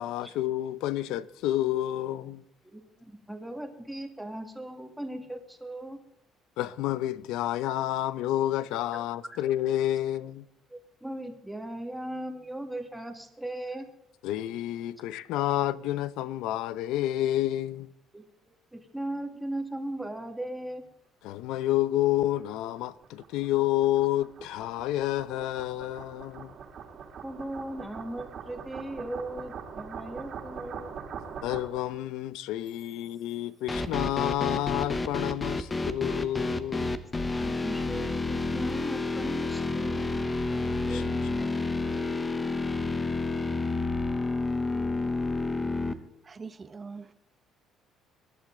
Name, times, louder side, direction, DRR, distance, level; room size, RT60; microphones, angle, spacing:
voice 1, 0.0-2.4 6.6-10.4 14.2-17.9 21.2-26.5 31.4-36.9 40.9-41.1 41.4-41.5, left 13 dB, 80° left, 0.7 m, -29 dB
voice 2, 2.7-6.0 10.7-13.9 18.1-18.2 18.7-20.8 27.2-30.9 37.2-40.2 40.5-40.6 40.9-42.0, right 1 dB, 5° right, 2.0 m, -38 dB
sound 1, 22.0-32.0, right 6 dB, 45° right, 2.6 m, -43 dB
sound 2, 33.7-45.9, left 3 dB, 15° left, 1.0 m, -30 dB
voice 3, 45.9-47.1, right 4 dB, 25° right, 0.9 m, -44 dB
22.0 x 11.5 x 3.8 m
cardioid pair, 145°, 0 cm